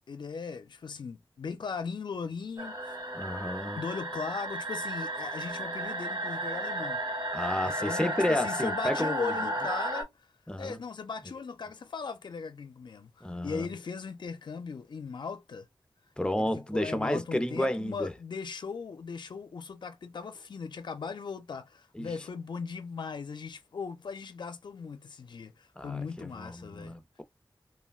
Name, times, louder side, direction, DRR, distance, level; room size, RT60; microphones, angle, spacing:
voice 1, 0.1-3.0 3.8-7.0 7.6-10.3 10.6-15.7 16.4-26.9, left 5 dB, 70° left, 0.5 m, -38 dB
sound 1, 2.6-10.0, right 1 dB, 55° right, 1.5 m, -34 dB
voice 2, 3.1-3.8 7.3-9.3 10.5-10.8 13.2-13.7 16.2-18.1 21.9-22.1 25.8-27.2, left 1 dB, 10° left, 0.6 m, -31 dB
3.3 x 2.1 x 2.3 m
wide cardioid pair, 65°, 8 cm